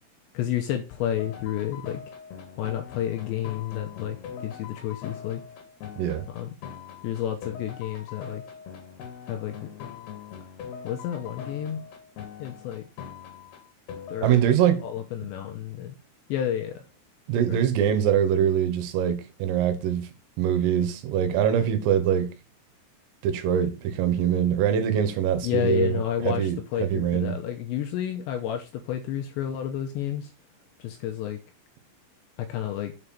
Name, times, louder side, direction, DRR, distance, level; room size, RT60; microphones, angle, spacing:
voice 1, 0.3-2.0 2.6-4.2 4.4-5.4 6.3-6.5 7.0-8.4 9.3-9.7 10.8-11.8 12.4-12.8 14.1-16.0 16.3-16.9 17.5-17.7 25.4-30.3 30.8-31.4 32.4-32.9, left 10 dB, 80° left, 2.7 m, -30 dB
sound 1, 1.1-14.4, left 7 dB, 60° left, 3.4 m, -42 dB
voice 2, 14.2-14.8 17.3-20.1 20.4-22.3 23.2-26.0 26.3-27.4, right 9 dB, 85° right, 3.8 m, -23 dB
7.8 x 4.8 x 5.6 m
omnidirectional pair, 5.8 m